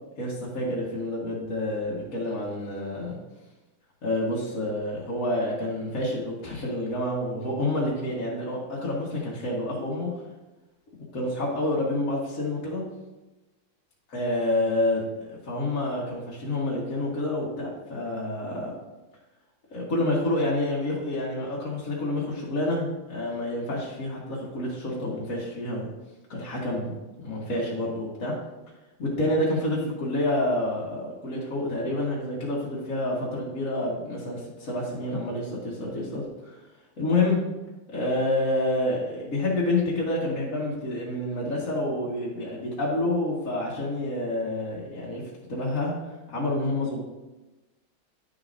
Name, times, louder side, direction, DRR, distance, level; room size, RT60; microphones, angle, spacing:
voice 1, 0.2-3.2 4.0-10.1 11.1-12.8 14.1-18.7 19.7-25.9 26.3-26.9 27.2-28.3 29.0-36.6 37.0-37.4 37.9-45.2 45.5-45.9 46.3-47.0, left 1 dB, 40° left, -6 dB, 1.8 m, -28 dB
10.5 x 6.8 x 2.6 m, 1.1 s
omnidirectional pair, 2.3 m